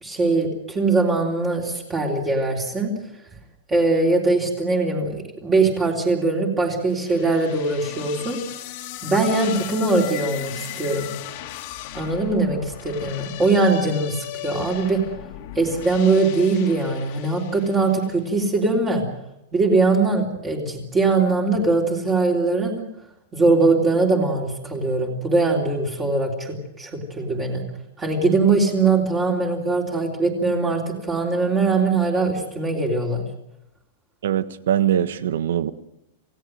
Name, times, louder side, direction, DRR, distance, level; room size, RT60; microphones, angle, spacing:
voice 1, 0.0-2.9 3.7-8.4 9.0-11.1 11.9-15.1 15.5-19.0 19.5-22.9 23.3-27.6 28.0-33.2, right 3 dB, 15° right, 3.3 m, -21 dB
sound 1, 6.9-18.2, left 14 dB, 45° left, 2.2 m, -36 dB
voice 2, 34.2-35.7, right 10 dB, 80° right, 1.4 m, -22 dB
28.0 x 17.0 x 7.8 m
supercardioid pair, 170°, 0 cm